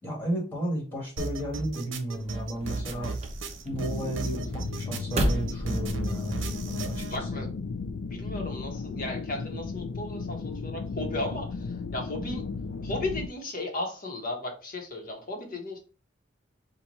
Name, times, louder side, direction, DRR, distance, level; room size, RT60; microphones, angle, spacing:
voice 1, 0.0-3.1 3.6-7.4, right 1 dB, 10° left, -3 dB, 2.1 m, -33 dB
sound 1, 1.2-7.2, right 4 dB, 75° right, 0.7 m, -36 dB
sound 2, 2.1-7.2, equal, 35° right, 0.7 m, -34 dB
sound 3, 3.7-13.3, left 4 dB, 65° left, 0.4 m, -35 dB
voice 2, 7.1-7.5 8.0-12.4 12.8-15.8, left 2 dB, 50° left, 1 dB, 1.2 m, -35 dB
4.5 x 2.5 x 4.1 m, 0.35 s
head